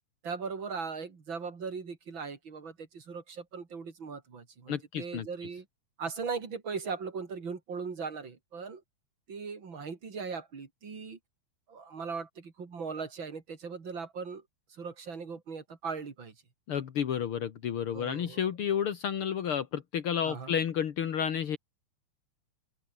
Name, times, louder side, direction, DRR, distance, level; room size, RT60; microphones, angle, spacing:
voice 1, 0.2-5.6 6.0-8.8 9.3-11.2 11.7-14.4 14.7-16.3 17.9-18.4 20.2-20.5, right 5 dB, 35° right, 3.2 m, -39 dB
voice 2, 4.7-5.3 16.7-21.6, left 8 dB, 55° left, 1.5 m, -31 dB
open air
omnidirectional pair, 4.5 m